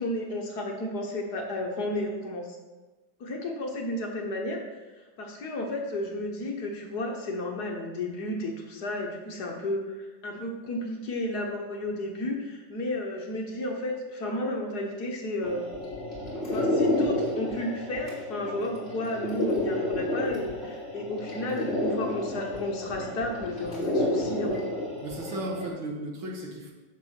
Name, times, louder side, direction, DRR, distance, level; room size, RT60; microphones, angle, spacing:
voice 1, 0.0-2.6 3.2-4.6 5.2-15.7 16.5-24.6, left 1 dB, 55° left, 1 dB, 1.6 m, -32 dB
sound 1, 15.4-25.7, left 1 dB, 25° left, 3.0 m, -30 dB
voice 2, 25.0-26.7, right 1 dB, 75° right, 0 dB, 2.4 m, -35 dB
7.5 x 7.4 x 5.8 m, 1.2 s
omnidirectional pair, 2.2 m